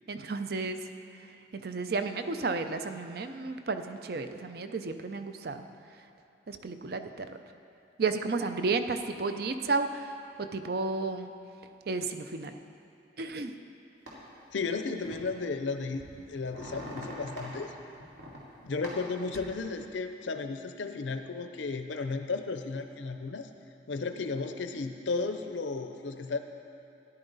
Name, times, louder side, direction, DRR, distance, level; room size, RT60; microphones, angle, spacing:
voice 1, 0.1-0.8 1.5-5.6 6.5-7.4 8.0-10.1 10.4-11.3 11.9-12.6 13.2-13.5, right 3 dB, 55° right, 8 dB, 0.5 m, -32 dB
sound 1, 14.1-14.2 15.0-15.3 15.8-17.6 18.0-18.4 18.8-19.5, equal, 75° right, 2.6 m, -43 dB
voice 2, 14.5-17.7 18.6-23.5 23.9-26.4, left 4 dB, 80° left, 7 dB, 0.6 m, -34 dB
13.5 x 10.5 x 4.0 m, 2.7 s
head